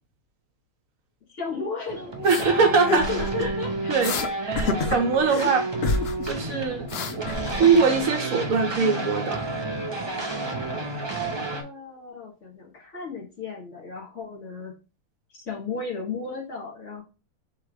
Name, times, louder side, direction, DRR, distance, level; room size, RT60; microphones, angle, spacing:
voice 1, 1.3-3.9 4.6-5.4 11.5-14.7 15.3-17.0, left 4 dB, 50° left, 2.0 m, -36 dB
sound 1, 1.9-11.6, right 2 dB, 40° right, 0.3 m, -31 dB
sound 2, 2.2-2.5 2.9-3.5 4.0-4.3 4.6-5.5 5.8-6.3 6.6-8.0, left 4 dB, 70° left, 0.5 m, -28 dB
voice 2, 2.2-3.1 3.4-3.5 3.9-4.1 4.4-5.7 6.2-6.9 7.5-9.4, right 5 dB, 65° right, 1.2 m, -22 dB
3.7 x 2.9 x 4.7 m
omnidirectional pair, 1.6 m